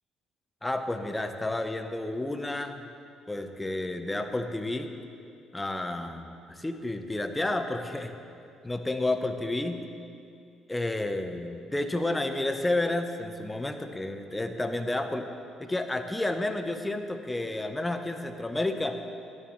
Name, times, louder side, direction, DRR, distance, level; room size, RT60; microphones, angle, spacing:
voice 1, 0.6-2.8 3.3-4.9 5.5-8.1 8.6-9.8 10.7-15.3 15.6-19.1, left 2 dB, 15° left, 7 dB, 0.9 m, -31 dB
12.5 x 10.0 x 3.2 m, 2.5 s
hypercardioid pair, 55°, 0 cm